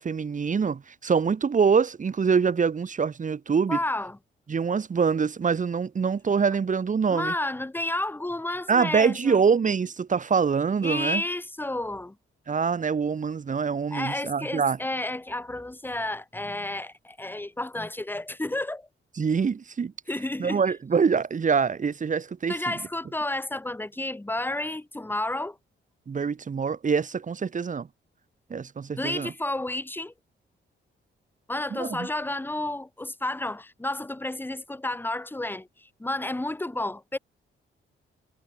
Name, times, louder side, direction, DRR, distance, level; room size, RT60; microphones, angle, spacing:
voice 1, 0.0-3.8 4.5-7.3 8.7-11.2 12.5-14.8 19.2-19.9 20.4-22.6 26.1-27.9 28.5-29.3 31.7-32.1, right 6 dB, 40° right, 1.7 m, -25 dB
voice 2, 3.7-4.2 7.1-9.4 10.8-12.2 13.9-18.9 20.1-20.6 22.5-25.6 29.0-30.1 31.5-37.2, left 2 dB, 10° left, 1.9 m, -31 dB
cardioid pair, 125°, 21 cm